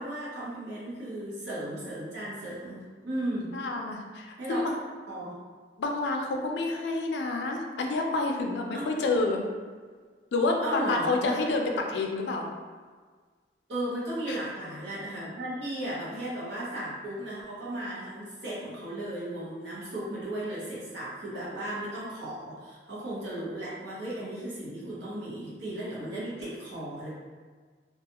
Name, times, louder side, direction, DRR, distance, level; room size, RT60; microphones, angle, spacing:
voice 1, 0.0-3.5 4.4-4.7 5.1-5.4 8.7-9.2 10.6-11.4 13.7-27.1, right 1 dB, 85° right, -7 dB, 0.9 m, -35 dB
voice 2, 3.5-4.8 5.8-9.4 10.3-12.5 14.3-14.4, left 3 dB, 75° left, 2 dB, 0.4 m, -28 dB
2.4 x 2.3 x 2.8 m, 1.5 s
head